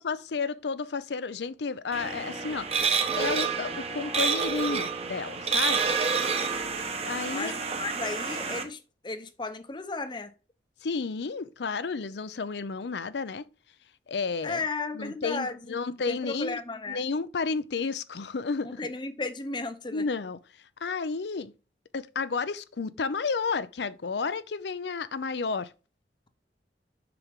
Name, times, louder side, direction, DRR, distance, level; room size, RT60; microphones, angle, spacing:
voice 1, 0.0-2.7 3.2-5.9 6.8-7.5 10.8-13.4 14.1-14.6 14.9-16.6 16.9-18.8 19.9-20.4 20.8-21.5 21.9-25.7, left 4 dB, 75° left, 0.6 m, -31 dB
sound 1, 1.9-8.6, right 5 dB, 35° right, 1.0 m, -29 dB
voice 2, 7.3-8.8 9.0-10.3 14.4-17.0 18.6-20.0, left 3 dB, 25° left, 0.8 m, -35 dB
6.9 x 5.9 x 3.6 m
head